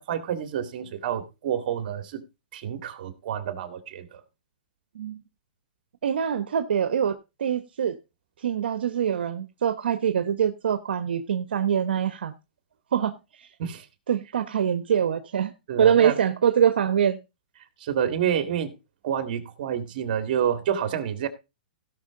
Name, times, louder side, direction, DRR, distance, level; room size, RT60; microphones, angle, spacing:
voice 1, 0.0-2.2 2.5-4.2 13.6-13.9 15.7-16.2 17.8-18.7 19.0-21.3, right 9 dB, 55° right, 2.1 m, -28 dB
voice 2, 6.0-8.0 8.4-12.3 12.9-13.5 14.1-15.5 15.8-17.2, right 8 dB, 85° right, 1.0 m, -24 dB
16.5 x 6.1 x 3.7 m
hypercardioid pair, 150°, 5 cm